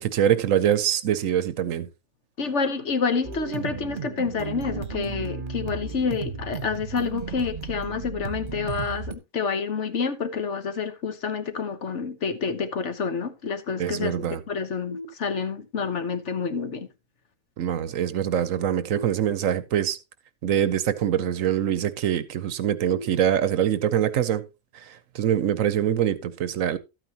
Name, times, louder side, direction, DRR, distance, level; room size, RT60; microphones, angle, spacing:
voice 1, 0.0-1.9 13.8-14.4 17.6-20.0 20.4-24.4 24.7-26.8, right 10 dB, 70° right, 1.1 m, -24 dB
voice 2, 2.4-16.9, left 5 dB, 60° left, 1.4 m, -28 dB
sound 1, 3.2-9.1, right 5 dB, 40° right, 1.1 m, -34 dB
sound 2, 14.9-15.9 18.9-19.9 22.9-23.9, left 1 dB, 30° left, 0.8 m, -43 dB
12.5 x 9.0 x 2.9 m
omnidirectional pair, 1.5 m